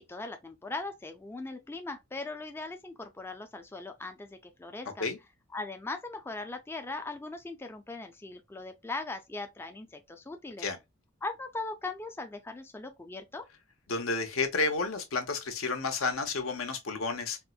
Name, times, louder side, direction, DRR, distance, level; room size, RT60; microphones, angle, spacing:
voice 1, 0.1-5.1 5.5-10.7 11.2-13.4, left 3 dB, 10° left, 0.3 m, -39 dB
voice 2, 13.9-17.4, left 4 dB, 80° left, 0.8 m, -31 dB
4.3 x 2.1 x 2.3 m
head